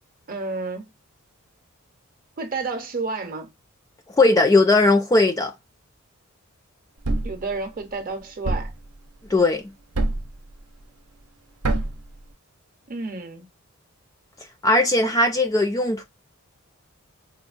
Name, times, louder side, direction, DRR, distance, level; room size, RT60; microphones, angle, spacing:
voice 1, 0.3-0.9 2.4-3.5 7.2-8.7 12.9-13.5, right 3 dB, 40° right, 0.7 m, -30 dB
voice 2, 4.2-5.5 9.3-9.6 14.6-16.0, left 2 dB, 15° left, 0.3 m, -18 dB
Thump thud, 7.0-7.4 8.5-8.8 10.0-10.4 11.6-12.0, right 2 dB, 75° right, 0.6 m, -24 dB
4.5 x 2.1 x 2.4 m
head